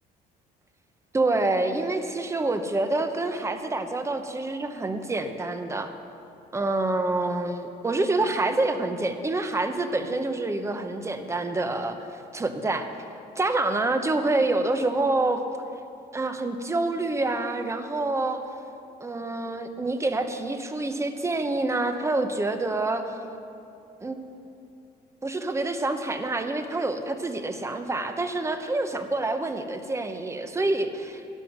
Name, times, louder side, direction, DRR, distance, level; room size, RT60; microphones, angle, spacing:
voice 1, 1.1-5.9 6.5-12.9 13.4-15.5 16.1-18.4 19.0-23.2 24.0-24.3 25.2-31.3, right 2 dB, 15° right, 7 dB, 0.9 m, -27 dB
12.5 x 10.5 x 6.0 m, 2.7 s
cardioid pair, 110°, 17 cm